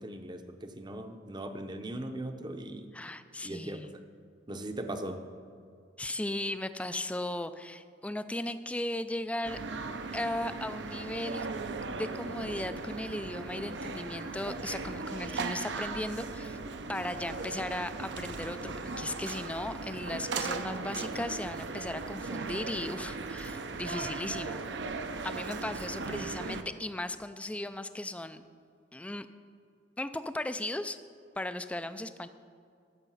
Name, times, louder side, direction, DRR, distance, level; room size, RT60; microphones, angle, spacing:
voice 1, 0.0-2.9 3.4-3.9 4.5-5.2, right 1 dB, 25° right, 7 dB, 0.7 m, -39 dB
voice 2, 2.9-3.9 6.0-9.6 10.1-11.5 12.0-16.6 16.9-24.6 25.2-28.4 28.9-29.3 30.0-31.0 31.4-32.3, left 1 dB, 5° left, 11 dB, 0.4 m, -36 dB
sound 1, 9.4-26.6, right 4 dB, 65° right, 0.7 m, -38 dB
14.0 x 6.8 x 5.6 m, 2.4 s
head